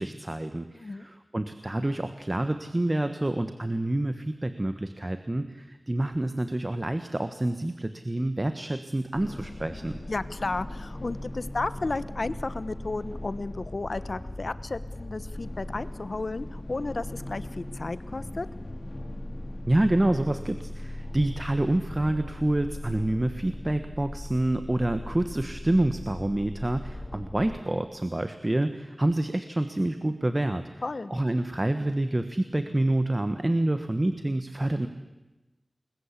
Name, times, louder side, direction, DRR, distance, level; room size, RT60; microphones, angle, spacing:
voice 1, 0.0-9.9 19.7-30.7 31.1-34.9, right 1 dB, 30° right, 9 dB, 1.4 m, -27 dB
voice 2, 0.7-1.1 10.1-18.5 30.8-31.1, left 3 dB, 65° left, 15 dB, 1.1 m, -33 dB
sound 1, 9.1-27.6, left 1 dB, 40° left, 2.7 m, -39 dB
29.0 x 21.5 x 8.4 m, 1.1 s
wide cardioid pair, 65°, 0 cm